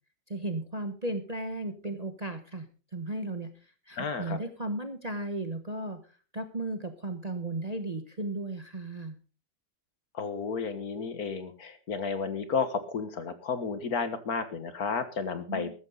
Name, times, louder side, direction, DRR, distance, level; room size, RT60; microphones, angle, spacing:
voice 1, 0.3-2.7 2.9-3.5 3.9-6.0 6.3-9.2 15.5-15.7, right 2 dB, 25° right, 7 dB, 1.1 m, -35 dB
voice 2, 3.9-4.4 10.1-15.7, left 5 dB, 55° left, 11 dB, 1.8 m, -32 dB
14.0 x 13.5 x 3.9 m, 0.36 s
omnidirectional pair, 1.9 m